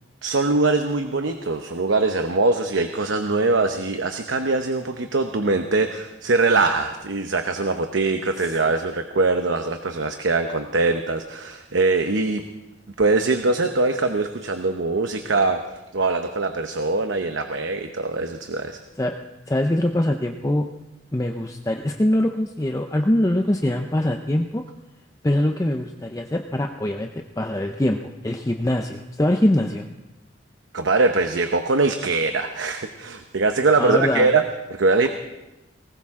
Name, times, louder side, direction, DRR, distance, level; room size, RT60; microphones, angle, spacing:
voice 1, 0.2-12.4 13.0-15.6 15.9-18.8 30.7-34.4 34.7-35.1, right 3 dB, 90° right, 6 dB, 0.9 m, -22 dB
voice 2, 19.5-20.7 21.1-24.6 25.2-27.1 27.4-29.9 33.8-34.3, left 1 dB, 15° left, 4 dB, 0.6 m, -23 dB
19.5 x 18.0 x 3.7 m, 1.0 s
head